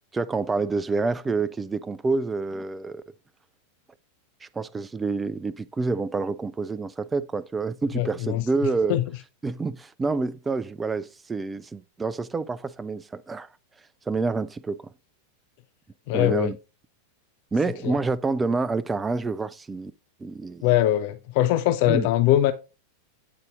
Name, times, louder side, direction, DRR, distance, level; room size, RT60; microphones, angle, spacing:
voice 1, 0.1-3.0 4.4-9.0 9.4-13.5 14.1-14.8 16.1-16.6 17.5-19.9 20.2-20.7 21.9-22.1, right 3 dB, 15° right, 0.4 m, -28 dB
voice 2, 7.9-8.4 8.9-9.0 16.1-16.5 17.8-18.0 20.6-22.5, left 13 dB, 50° left, 0.5 m, -22 dB
8.7 x 4.0 x 3.8 m
figure-of-eight pair, 90°, 0 cm